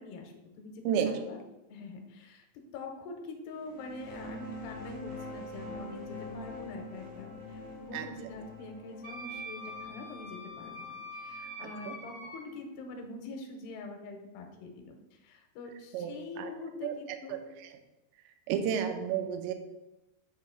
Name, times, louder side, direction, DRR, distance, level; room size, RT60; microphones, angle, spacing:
voice 1, 0.0-1.4 1.7-17.4, left 3 dB, 75° left, 3 dB, 2.5 m, -45 dB
voice 2, 0.8-1.2 7.9-8.1 11.6-12.0 15.9-16.5 16.8-16.9 17.3-17.4 18.3-19.5, right 8 dB, 80° right, 6 dB, 2.7 m, -32 dB
sound 1, 3.6-12.9, left 1 dB, 60° right, 0.4 m, -45 dB
Wind instrument woodwind instrument, 9.0-12.4, equal, 40° left, 0.6 m, -44 dB
8.1 x 2.8 x 5.7 m, 0.98 s
omnidirectional pair, 5.6 m